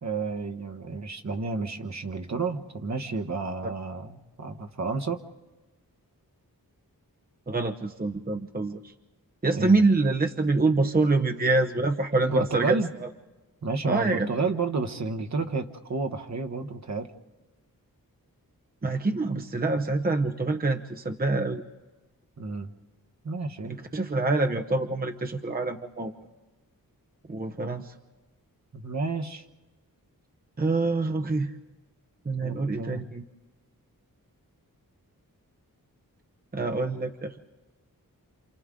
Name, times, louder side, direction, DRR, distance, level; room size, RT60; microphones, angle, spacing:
voice 1, 0.0-5.2 9.5-9.7 12.3-12.9 13.6-17.1 22.4-22.7 23.2-23.7 28.7-29.4 32.4-33.0, right 4 dB, 50° right, 5 dB, 1.3 m, -31 dB
voice 2, 7.5-8.9 9.4-13.1 13.8-14.4 18.8-21.6 23.6-26.1 27.3-27.9 30.6-31.5 32.2-33.2 36.5-37.4, right 3 dB, 25° right, 4 dB, 0.9 m, -26 dB
28.0 x 27.5 x 3.8 m, 1.2 s
wide cardioid pair, 75°, 36 cm